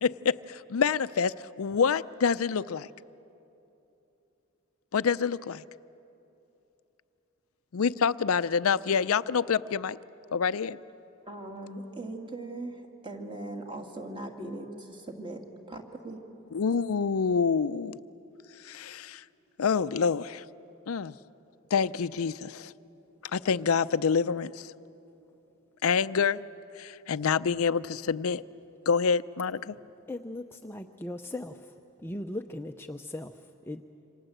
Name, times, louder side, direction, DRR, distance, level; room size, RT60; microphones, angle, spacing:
voice 1, 0.0-2.9 4.9-5.6 7.7-10.0 10.3-10.8 16.5-18.0 18.6-19.2 19.6-20.4 20.9-21.1 21.7-22.7 23.3-24.7 25.8-26.4 26.8-28.4 28.9-29.8, left 6 dB, 85° left, 15 dB, 0.5 m, -27 dB
voice 2, 11.3-15.4 15.7-16.2, right 2 dB, 25° right, 2 dB, 2.4 m, -39 dB
voice 3, 30.1-31.7 32.0-33.8, left 1 dB, 10° left, 5 dB, 0.6 m, -38 dB
27.5 x 26.0 x 7.9 m, 2.9 s
head